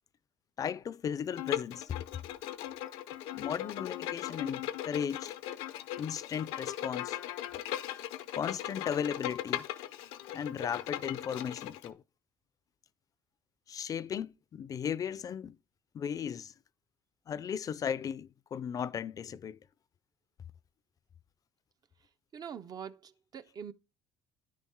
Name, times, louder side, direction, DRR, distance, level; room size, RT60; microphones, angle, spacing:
voice 1, 0.6-2.0 3.3-5.4 6.0-7.2 8.3-9.7 10.3-12.0 13.7-15.6 15.9-16.5 17.3-19.6, left 8 dB, 35° left, 0.4 m, -36 dB
Bowed string instrument, 1.4-11.9, left 13 dB, 90° left, 0.6 m, -38 dB
voice 2, 22.3-23.7, right 7 dB, 40° right, 0.4 m, -44 dB
9.9 x 4.1 x 3.6 m
cardioid pair, 105°, 10 cm